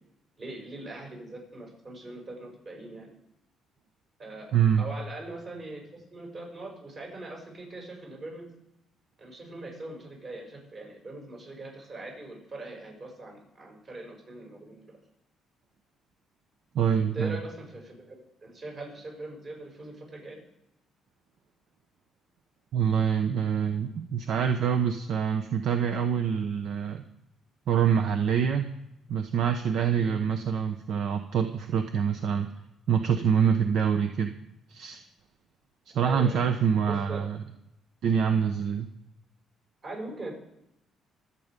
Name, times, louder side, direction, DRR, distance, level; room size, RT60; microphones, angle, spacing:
voice 1, 0.4-3.1 4.2-8.4 9.2-14.9 17.1-20.4 30.0-30.2 36.0-36.4 36.9-37.3 39.8-40.3, right 2 dB, 40° right, -1 dB, 7.4 m, -41 dB
voice 2, 4.5-4.8 16.7-17.4 22.7-27.0 27.7-28.7 29.1-32.5 32.9-34.3 34.7-35.0 35.9-37.4 38.0-38.9, right 7 dB, 65° right, 7 dB, 0.9 m, -25 dB
24.5 x 8.5 x 5.3 m, 0.84 s
cardioid pair, 125°, 0 cm